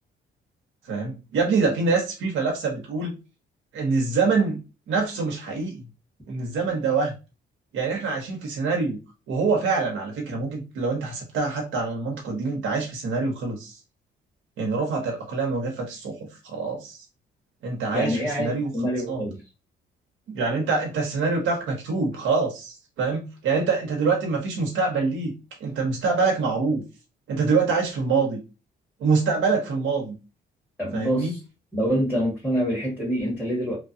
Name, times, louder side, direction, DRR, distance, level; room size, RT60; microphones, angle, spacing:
voice 1, 0.9-3.1 3.7-4.6 4.9-5.8 6.3-7.1 7.7-9.0 9.3-13.8 14.6-17.0 17.6-18.7 19.1-19.2 20.3-26.8 27.3-28.4 29.0-30.2 30.9-31.3, right 4 dB, 80° right, 0.9 m, -25 dB
voice 2, 17.9-19.4 30.8-31.4 31.7-33.8, equal, 5° left, 1.7 m, -26 dB
3.1 x 2.2 x 2.6 m
cardioid pair, 90°, 20 cm